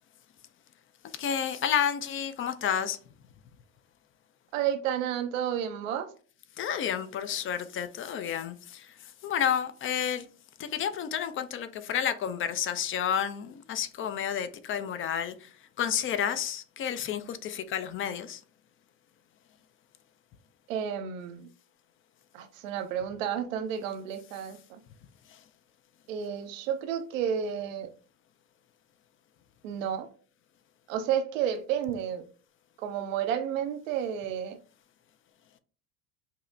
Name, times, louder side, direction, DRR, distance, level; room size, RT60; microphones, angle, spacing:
voice 1, 1.2-3.0 6.6-8.9 9.2-10.3 10.6-15.5 15.8-18.4, left 9 dB, 35° left, 0.4 m, -30 dB
voice 2, 4.5-6.1 20.7-21.5 22.3-24.8 26.1-27.9 29.6-30.1 30.9-32.2 32.8-34.6, right 9 dB, 90° right, 0.7 m, -31 dB
5.3 x 2.0 x 2.6 m
supercardioid pair, 95°, 38 cm